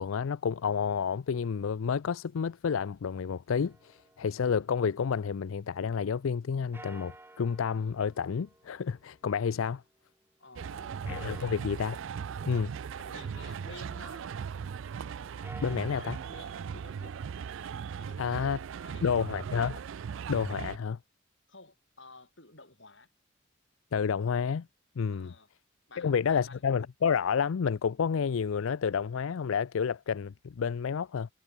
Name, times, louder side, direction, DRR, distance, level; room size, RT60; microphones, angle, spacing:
voice 1, 0.0-9.8 11.1-12.0 12.5-12.7 15.6-16.2 18.2-18.6 19.0-19.7 20.3-21.0 23.9-24.7 25.0-25.3 26.0-31.3, left 6 dB, 90° left, 0.4 m, -30 dB
sound 1, 3.5-5.6 6.7-10.1 11.0-14.0 15.3-19.3, right 2 dB, 10° right, 1.3 m, -55 dB
voice 2, 10.4-11.0 11.3-11.6 12.5-14.4 15.7-17.2 18.0-19.4 21.5-23.1 25.1-25.5 25.9-26.7, left 3 dB, 65° left, 6.6 m, -52 dB
sound 2, 10.6-20.8, right 7 dB, 70° right, 0.4 m, -39 dB
head